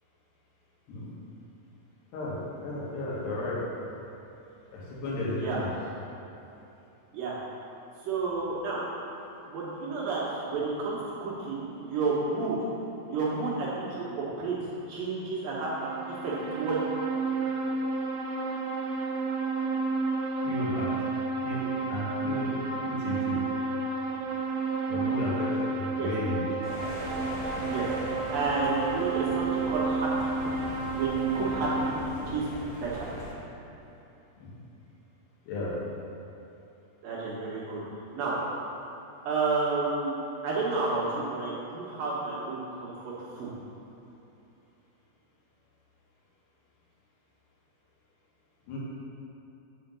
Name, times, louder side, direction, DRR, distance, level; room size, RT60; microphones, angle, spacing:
voice 1, 2.1-3.6 4.7-5.7 20.4-20.9 21.4-21.6 21.9-22.5 22.9-23.4 24.9-26.4 34.4-34.5 35.5-35.7 48.7-48.8, left 2 dB, 75° left, -6 dB, 3.8 m, -33 dB
voice 2, 8.0-8.8 9.5-12.6 13.1-14.6 14.9-15.9 16.2-16.8 26.0-26.1 27.6-27.9 28.3-30.7 30.9-32.0 32.3-32.5 32.8-33.1 37.0-37.8 38.1-38.3 39.3-43.5, right 3 dB, 70° right, -6 dB, 2.5 m, -31 dB
sound 1, 15.6-31.9, right 4 dB, 90° right, 1.9 m, -31 dB
sound 2, 26.6-33.3, left 1 dB, 55° left, 1.5 m, -40 dB
6.9 x 5.6 x 6.8 m, 2.9 s
omnidirectional pair, 4.8 m